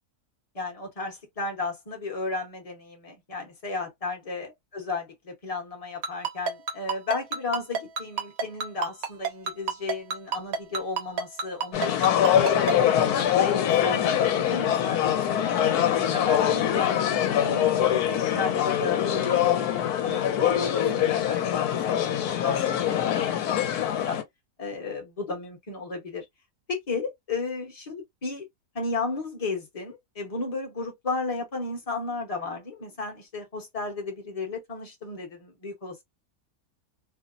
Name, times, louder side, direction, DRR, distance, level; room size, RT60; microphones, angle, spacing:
voice 1, 0.5-16.9 17.4-21.6 21.9-24.2 24.6-26.3 26.7-28.5 28.7-36.0, left 3 dB, 30° left, 0.8 m, -34 dB
Ringtone, 6.0-12.7, right 5 dB, 65° right, 1.1 m, -28 dB
sound 1, 11.7-24.2, left 10 dB, 80° left, 1.1 m, -24 dB
2.8 x 2.0 x 2.4 m
omnidirectional pair, 1.7 m